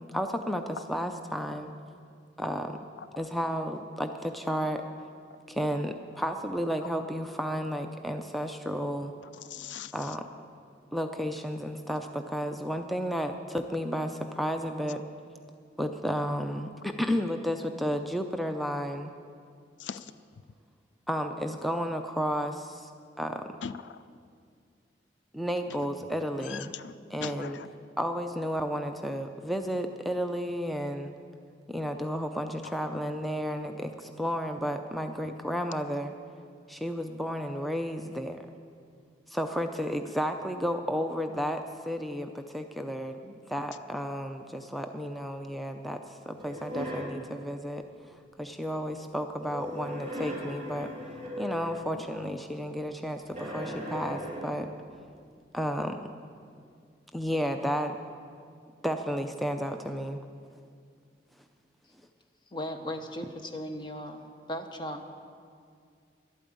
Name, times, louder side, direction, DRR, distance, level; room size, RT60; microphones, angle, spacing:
voice 1, 0.0-1.7 2.4-2.9 3.2-4.8 5.5-9.1 9.9-10.3 10.9-15.0 15.8-19.1 21.1-22.9 23.2-23.5 25.3-26.7 27.1-27.6 28.0-31.1 31.7-36.1 36.7-38.4 39.3-47.8 48.4-50.9 51.4-54.7 55.5-56.1 57.1-58.0 58.8-60.2, equal, ahead, 6 dB, 0.4 m, -32 dB
voice 2, 9.3-9.9 19.8-20.1 23.6-24.0 26.4-26.9 27.2-27.7 52.0-52.1, left 7 dB, 85° left, 14 dB, 0.4 m, -40 dB
sound 1, 46.4-47.2 49.4-51.9 53.3-54.7, equal, 35° right, 3.4 m, -38 dB
voice 3, 62.5-65.0, left 1 dB, 25° left, 5 dB, 1.0 m, -37 dB
12.0 x 8.9 x 8.5 m, 2.2 s
head